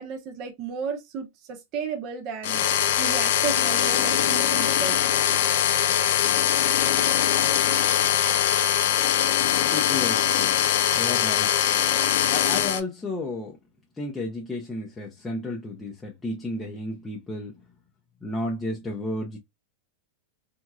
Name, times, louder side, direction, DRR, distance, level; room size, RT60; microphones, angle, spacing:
voice 1, 0.0-5.0, right 6 dB, 35° right, 0.9 m, -34 dB
sound 1, 2.4-12.8, left 10 dB, 70° left, 0.6 m, -22 dB
voice 2, 9.7-10.6 10.9-11.5 12.3-13.6 14.0-17.6 18.2-19.4, left 2 dB, 10° left, 0.7 m, -32 dB
3.6 x 3.0 x 2.3 m
supercardioid pair, 155°, 0 cm